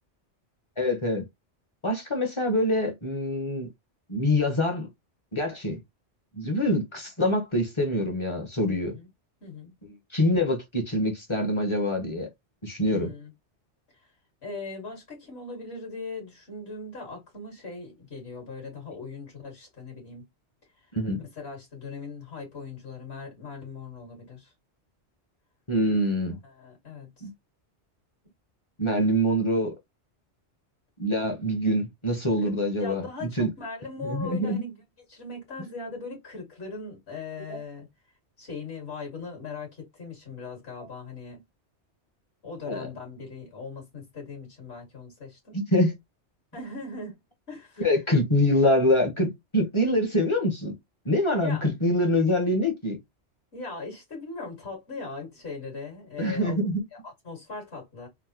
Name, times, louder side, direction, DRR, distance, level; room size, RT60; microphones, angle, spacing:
voice 1, 0.8-1.2 1.8-3.7 4.1-4.9 5.3-5.8 6.3-8.9 10.1-12.3 12.6-13.1 20.9-21.2 25.7-26.4 27.2-27.3 28.8-29.7 31.0-33.5 34.0-34.6 37.5-37.6 42.7-42.9 45.5-45.9 47.8-50.7 51.0-53.0 56.2-56.8, left 1 dB, 30° left, 0.9 m, -25 dB
voice 2, 8.7-9.1 9.4-9.7 12.8-13.3 14.4-20.3 21.2-24.5 26.4-27.3 32.4-32.5 32.8-34.7 35.1-37.9 38.4-41.4 42.4-45.6 46.5-47.2 47.5-47.8 51.4-51.7 53.5-56.5 57.0-58.1, left 3 dB, 65° left, 2.2 m, -39 dB
3.9 x 2.1 x 2.8 m
omnidirectional pair, 1.2 m